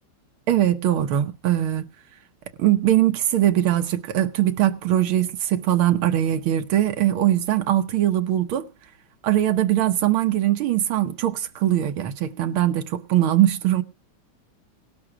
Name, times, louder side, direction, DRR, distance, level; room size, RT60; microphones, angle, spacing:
voice 1, 0.5-1.9 2.6-8.7 9.2-13.8, right 12 dB, 85° right, 1.9 m, -21 dB
18.0 x 12.0 x 4.9 m
omnidirectional pair, 2.2 m